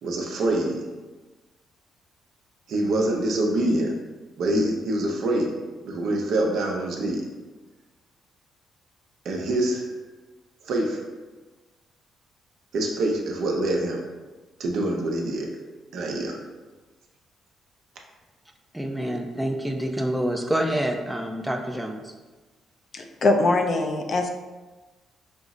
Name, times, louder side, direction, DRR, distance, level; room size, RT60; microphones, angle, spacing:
voice 1, 0.0-0.9 2.7-4.0 4.4-7.2 9.2-9.9 10.6-11.1 12.7-14.0 14.6-15.6 15.9-16.4, right 1 dB, 75° right, 0 dB, 0.7 m, -25 dB
voice 2, 18.7-22.0, right 1 dB, 5° right, 2 dB, 0.4 m, -27 dB
voice 3, 22.9-24.3, left 2 dB, 50° left, 3 dB, 0.5 m, -22 dB
5.2 x 2.0 x 3.6 m, 1.2 s
cardioid pair, 90°, 0 cm